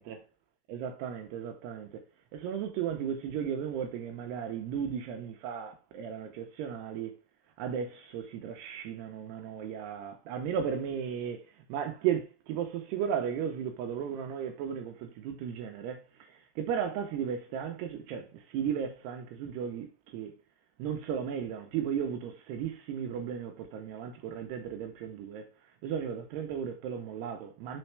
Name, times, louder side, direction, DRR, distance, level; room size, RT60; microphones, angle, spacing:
voice 1, 0.7-1.9 2.3-7.2 7.6-11.4 11.7-16.0 16.6-20.3 20.8-25.5 25.8-27.8, right 8 dB, 80° right, 2.9 m, -35 dB
6.2 x 4.5 x 4.6 m
omnidirectional pair, 4.9 m